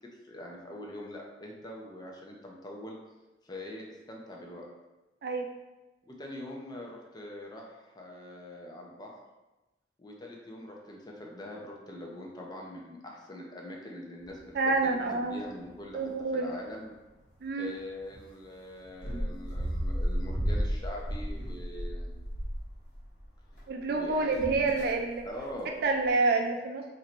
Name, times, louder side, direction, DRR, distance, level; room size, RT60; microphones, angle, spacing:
voice 1, 0.2-3.0 3.4-4.6 6.1-9.1 10.0-16.0 16.3-16.9 17.6-22.1 23.9-24.4 25.2-25.7, left 1 dB, 25° left, -1 dB, 0.6 m, -43 dB
sound 1, 14.2-14.9 15.2-15.3 15.6-16.1 16.7-16.9 17.2-17.3 18.1-18.3 18.8-23.6 23.9-25.6 25.9-26.1, equal, 45° left, 1.2 m, -33 dB
voice 2, 14.5-15.5 15.9-16.5 17.4-17.7 23.7-25.2 25.8-26.9, right 3 dB, 60° right, 3 dB, 0.4 m, -28 dB
3.1 x 2.6 x 4.3 m, 1.1 s
head